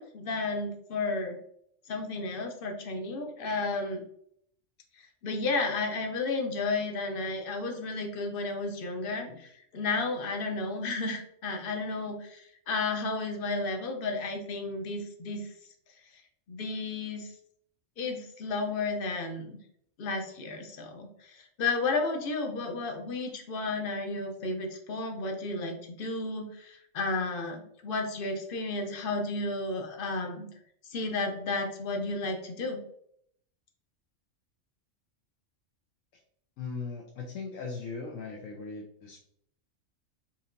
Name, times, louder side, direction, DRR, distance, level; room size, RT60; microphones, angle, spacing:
voice 1, 0.0-1.4 1.9-4.0 5.2-15.5 16.5-17.3 18.0-19.6 20.0-30.5 30.9-32.8, left 3 dB, 55° left, 3 dB, 0.8 m, -32 dB
voice 2, 36.6-39.2, left 4 dB, 90° left, 0 dB, 1.0 m, -39 dB
4.3 x 2.8 x 2.6 m, 0.70 s
omnidirectional pair, 1.3 m